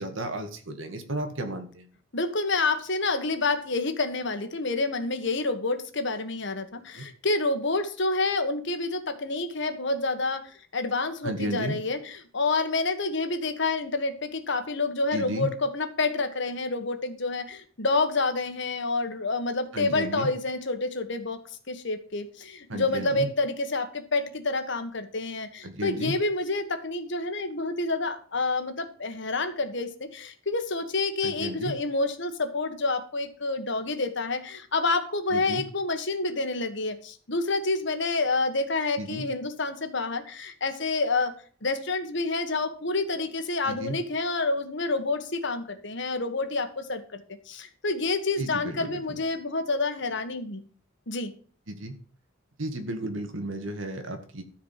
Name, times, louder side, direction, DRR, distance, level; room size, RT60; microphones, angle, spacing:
voice 1, 0.0-1.9 7.0-7.1 11.2-11.8 15.1-15.5 19.7-20.3 22.7-23.3 25.6-26.2 31.2-31.7 35.3-35.6 39.0-39.3 43.6-44.0 48.4-49.2 51.7-52.0 52.6-54.4, right 1 dB, 70° right, 6 dB, 2.1 m, -33 dB
voice 2, 2.1-21.4 21.7-41.3 41.6-50.6 51.1-51.3, left 3 dB, 60° left, 8 dB, 1.6 m, -28 dB
13.5 x 5.0 x 7.5 m, 0.43 s
head